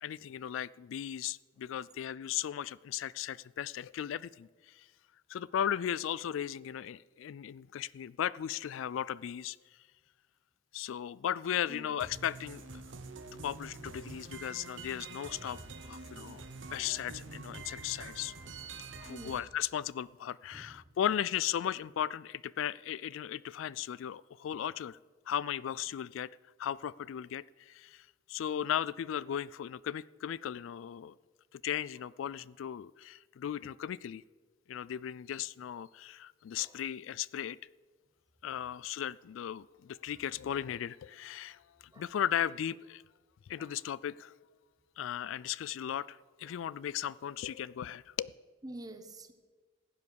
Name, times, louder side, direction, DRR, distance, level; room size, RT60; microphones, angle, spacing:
voice 1, 0.0-4.9 5.3-9.6 10.7-12.6 13.4-16.4 16.7-18.3 19.0-25.0 25.3-26.3 26.6-31.2 31.5-34.2 34.7-37.6 38.4-43.0 43.5-44.3 45.0-48.3, left 10 dB, 75° left, 0.3 m, -36 dB
sound 1, 12.0-19.4, right 3 dB, 70° right, 1.3 m, -46 dB
voice 2, 19.0-19.4 20.5-20.8 28.5-28.6 36.5-36.8 41.9-42.1 43.6-43.8 45.4-45.5 46.4-46.6 48.6-49.3, right 1 dB, 20° right, 1.1 m, -48 dB
15.0 x 8.4 x 6.9 m
head